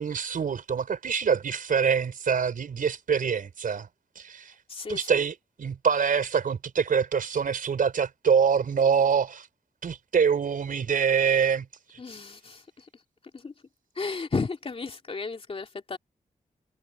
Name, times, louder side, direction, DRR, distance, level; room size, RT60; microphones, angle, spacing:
voice 1, 0.0-3.9 4.2-4.5 4.9-9.5 9.8-12.0, right 6 dB, 75° right, 4.7 m, -25 dB
voice 2, 4.7-5.2 12.0-12.8 13.3-13.5 14.0-16.0, left 4 dB, 40° left, 2.6 m, -33 dB
wide cardioid pair, 110°, 14 cm